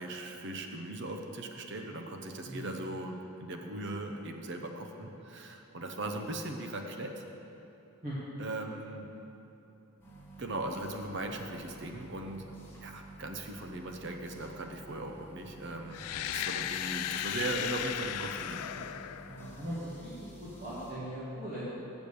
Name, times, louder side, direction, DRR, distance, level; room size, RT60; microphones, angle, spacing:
voice 1, 0.0-7.2 8.4-9.1 10.4-12.5 12.8-19.0, right 2 dB, 50° right, 4 dB, 0.7 m, -39 dB
voice 2, 2.4-2.7 8.0-8.2 19.2-21.7, equal, 35° right, -10 dB, 1.6 m, -40 dB
sound 1, 10.0-20.9, right 1 dB, 10° left, 1.4 m, -51 dB
sound 2, 15.9-19.8, left 11 dB, 85° left, 0.3 m, -36 dB
7.8 x 7.1 x 6.8 m, 2.9 s
head